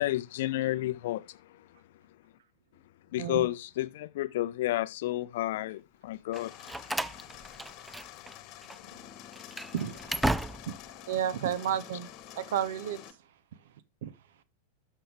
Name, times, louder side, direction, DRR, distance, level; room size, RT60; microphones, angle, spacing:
voice 1, 0.0-1.4 3.1-6.5, left 15 dB, 55° left, 0.5 m, -31 dB
sound 1, 6.3-13.1, left 11 dB, 40° left, 1.2 m, -48 dB
Slam, 6.3-8.4 8.6-8.8 9.3-10.9, right 1 dB, 5° right, 0.4 m, -34 dB
voice 2, 11.1-12.1 12.4-13.0 14.0-14.1, right 9 dB, 55° right, 0.9 m, -31 dB
12.5 x 5.7 x 3.1 m
figure-of-eight pair, 90°, 0 cm